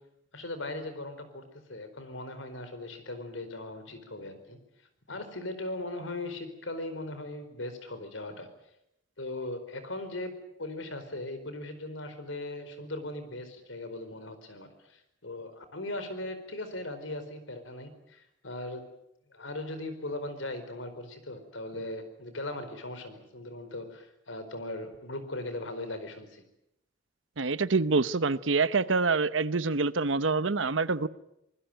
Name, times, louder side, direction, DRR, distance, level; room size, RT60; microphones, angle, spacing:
voice 1, 0.3-4.6 5.1-8.5 9.2-10.3 10.6-18.8 19.3-26.4, left 2 dB, 80° left, 4.6 m, -39 dB
voice 2, 27.4-31.1, right 4 dB, 75° right, 0.9 m, -26 dB
25.5 x 20.5 x 9.1 m
head